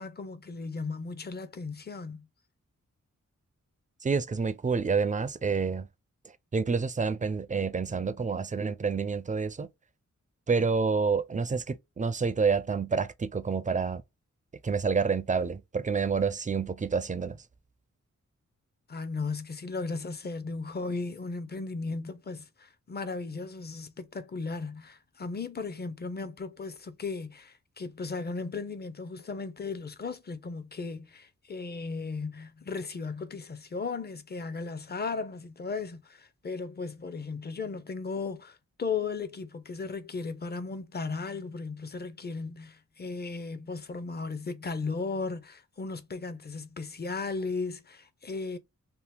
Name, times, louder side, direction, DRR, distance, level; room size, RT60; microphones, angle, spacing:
voice 1, 0.0-2.3 18.9-48.6, left 4 dB, 35° left, 0.5 m, -36 dB
voice 2, 4.0-5.9 6.5-9.7 10.5-14.0 14.6-17.4, right 5 dB, 25° right, 0.4 m, -28 dB
2.9 x 2.0 x 3.3 m
wide cardioid pair, 80°, 30 cm